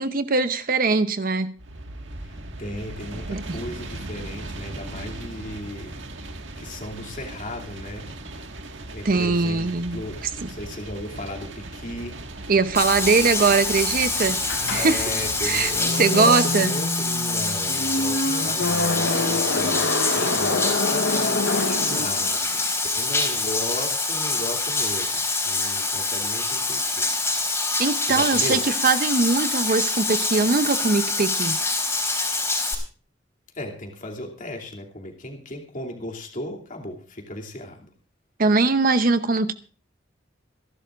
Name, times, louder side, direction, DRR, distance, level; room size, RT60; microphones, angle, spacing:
voice 1, 0.0-1.5 3.3-3.6 9.0-10.5 12.5-14.4 14.7-15.0 15.4-15.7 16.0-16.7 21.9-22.1 27.8-31.6 38.4-39.5, right 4 dB, 50° right, 0.8 m, -21 dB
sound 1, 1.6-15.8, right 2 dB, 75° right, 1.8 m, -38 dB
voice 2, 2.6-5.9 6.6-8.1 8.9-12.2 14.7-22.6 22.9-27.1 28.1-28.6 33.6-37.9, left 1 dB, 45° left, 2.7 m, -35 dB
Bathtub (filling or washing), 12.7-32.7, left 3 dB, 15° left, 3.9 m, -25 dB
sound 2, 14.5-22.5, left 2 dB, 70° left, 1.1 m, -27 dB
27.0 x 11.5 x 2.5 m
head